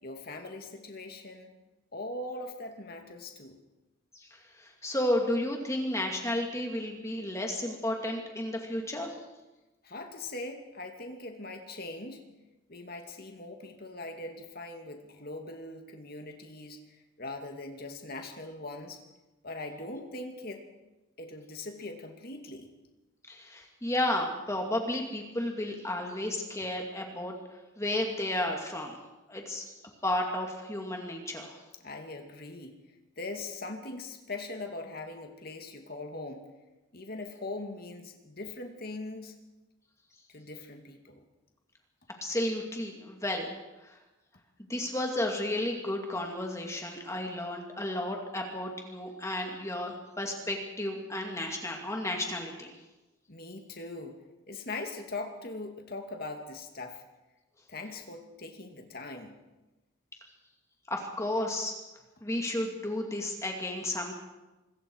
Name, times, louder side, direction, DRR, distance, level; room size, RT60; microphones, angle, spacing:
voice 1, 0.0-1.5 1.9-3.6 9.8-12.2 12.7-19.0 19.4-20.6 21.2-22.7 31.8-32.8 33.2-36.5 36.9-39.4 40.3-41.2 53.3-54.2 54.5-57.0 57.7-59.4, left 2 dB, 45° left, 4 dB, 2.4 m, -41 dB
voice 2, 4.6-9.1 23.3-27.3 27.8-29.0 29.3-29.7 30.0-31.6 42.2-43.5 43.8-44.0 44.6-52.7 60.9-61.7 62.2-64.1, left 1 dB, 15° left, 1 dB, 2.5 m, -32 dB
25.0 x 22.0 x 4.8 m, 1.1 s
head